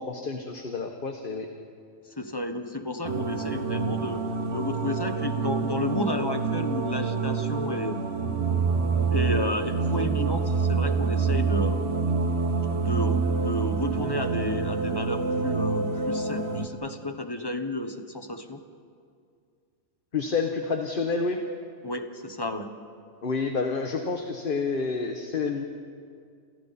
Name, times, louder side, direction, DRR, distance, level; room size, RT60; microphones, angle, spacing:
voice 1, 0.0-1.5 20.1-21.4 23.2-25.7, left 4 dB, 40° left, 4 dB, 1.3 m, -29 dB
voice 2, 2.2-8.0 9.1-11.8 12.7-18.6 21.8-22.7, left 1 dB, 20° left, 7 dB, 1.2 m, -32 dB
sound 1, 3.0-16.7, right 4 dB, 50° right, 1.5 m, -27 dB
28.5 x 28.5 x 4.3 m, 2.3 s
omnidirectional pair, 1.4 m